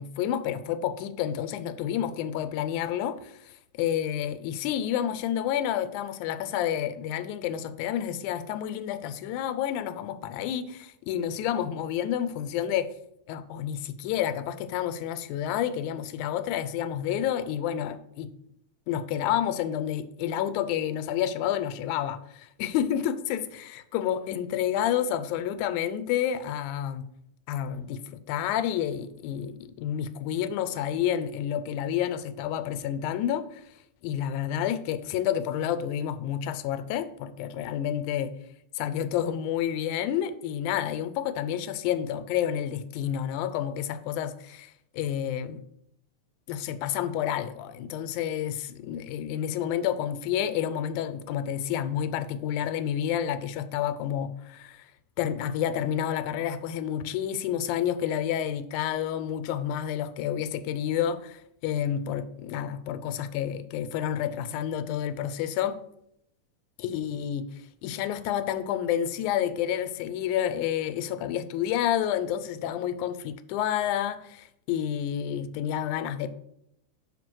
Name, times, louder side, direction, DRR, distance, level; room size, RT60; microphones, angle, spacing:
voice 1, 0.0-12.9 13.3-18.3 18.9-27.1 27.5-33.6 34.0-38.3 38.8-45.6 46.5-54.9 55.2-65.8 66.8-67.5 67.8-76.3, left 10 dB, 85° left, 2.0 m, -29 dB
5.7 x 4.8 x 6.1 m
omnidirectional pair, 3.4 m